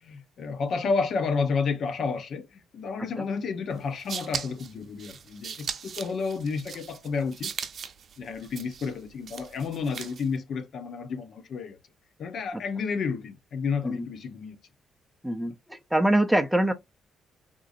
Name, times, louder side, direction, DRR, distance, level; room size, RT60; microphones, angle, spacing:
voice 1, 0.0-7.5 8.2-11.8 12.2-14.6 15.4-15.5, left 5 dB, 60° left, 0.7 m, -31 dB
sound 1, 3.8-10.4, right 7 dB, 55° right, 0.6 m, -39 dB
voice 2, 15.2-16.7, right 1 dB, ahead, 0.4 m, -24 dB
3.8 x 2.5 x 2.5 m
cardioid pair, 90°, 0 cm